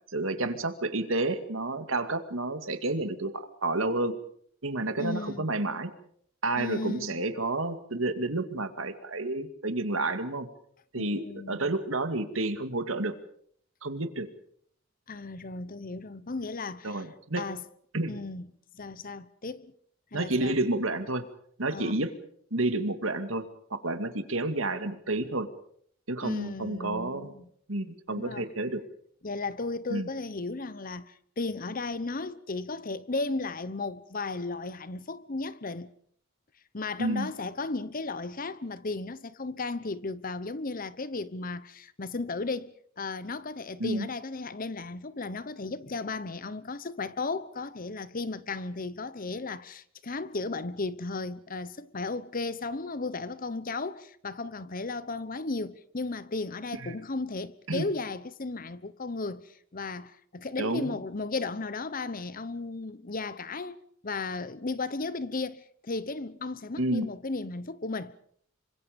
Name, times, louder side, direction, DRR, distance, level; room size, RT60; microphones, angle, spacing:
voice 1, 0.1-4.1 4.6-5.9 6.4-10.5 10.9-13.1 13.8-14.3 16.8-17.4 17.9-18.2 20.1-21.2 21.6-22.1 22.5-25.5 26.1-27.3 27.7-28.8 29.9-30.1 37.0-37.3 43.8-44.1 56.8-56.9 57.7-57.9 60.6-60.9 66.8-67.1, right 2 dB, 70° right, 2.3 m, -30 dB
voice 2, 5.0-5.5 6.5-7.2 11.0-11.7 15.1-17.0 17.4-17.6 18.1-18.5 18.7-19.7 20.1-20.6 21.7-22.1 26.2-27.5 28.1-28.5 29.2-35.9 36.7-42.7 43.0-68.1, left 3 dB, 40° left, 1.0 m, -35 dB
27.0 x 25.0 x 5.3 m
head